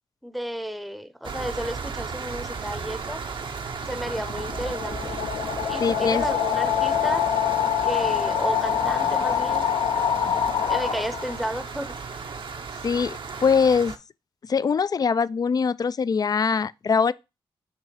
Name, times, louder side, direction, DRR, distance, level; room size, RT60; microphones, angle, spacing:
voice 1, 0.2-3.2 3.9-5.1 5.7-7.2 7.8-9.6 10.6-12.0, equal, ahead, 0.7 m, -32 dB
sound 1, 1.2-14.0, right 5 dB, 60° right, 0.8 m, -35 dB
sound 2, 3.7-11.5, left 9 dB, 85° left, 0.8 m, -25 dB
voice 2, 5.8-6.2 12.8-13.9 14.5-17.1, left 5 dB, 40° left, 0.3 m, -22 dB
5.9 x 3.1 x 5.6 m
cardioid pair, 60°, 10 cm